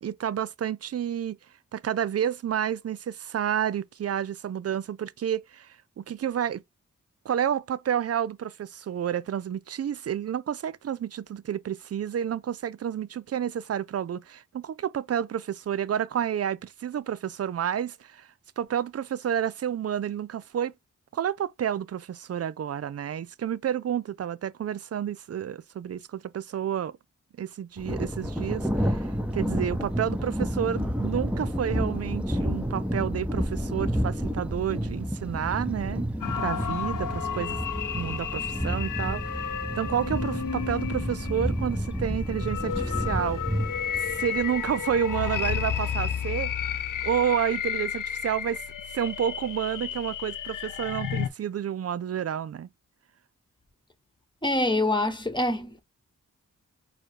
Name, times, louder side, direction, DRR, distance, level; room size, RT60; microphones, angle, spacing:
voice 1, 0.0-1.4 1.7-6.6 7.3-18.3 18.6-20.7 21.1-27.0 27.4-29.1 29.3-36.0 36.4-37.6 37.9-43.4 44.1-46.5 47.0-48.6 48.9-52.7, right 9 dB, 50° right, 0.5 m, -30 dB
Thunder, 27.8-46.2, equal, 5° right, 1.1 m, -30 dB
sound 1, 36.2-51.3, left 8 dB, 75° left, 0.7 m, -32 dB
voice 2, 54.4-55.8, left 1 dB, 15° left, 1.3 m, -25 dB
4.4 x 2.3 x 4.7 m
cardioid pair, 45°, 32 cm